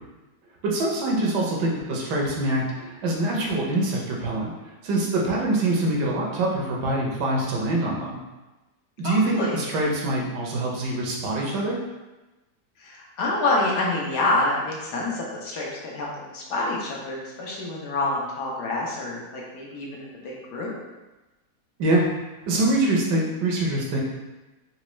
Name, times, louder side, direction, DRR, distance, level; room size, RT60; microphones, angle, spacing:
voice 1, 0.6-4.5 4.8-8.2 9.0-11.8 21.8-22.0 22.5-24.0, right 2 dB, 80° right, -2 dB, 1.3 m, -24 dB
voice 2, 9.0-9.6 12.8-20.7, left 2 dB, 75° left, -3 dB, 1.3 m, -27 dB
4.1 x 2.2 x 3.0 m, 1.1 s
omnidirectional pair, 1.8 m